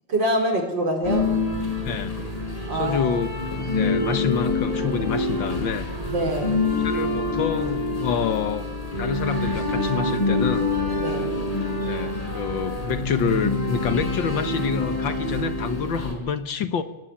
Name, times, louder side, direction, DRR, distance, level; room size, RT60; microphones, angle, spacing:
voice 1, 0.1-1.2 2.7-3.2 6.1-6.6 11.0-11.3, right 1 dB, 60° right, 3 dB, 5.3 m, -25 dB
sound 1, 1.0-16.1, left 2 dB, 15° left, 4.6 m, -26 dB
voice 2, 1.8-2.2 2.7-3.3 3.6-5.9 6.8-8.7 9.0-10.7 11.8-16.8, left 6 dB, 70° left, 11 dB, 2.0 m, -27 dB
25.5 x 18.5 x 8.8 m, 0.97 s
omnidirectional pair, 2.2 m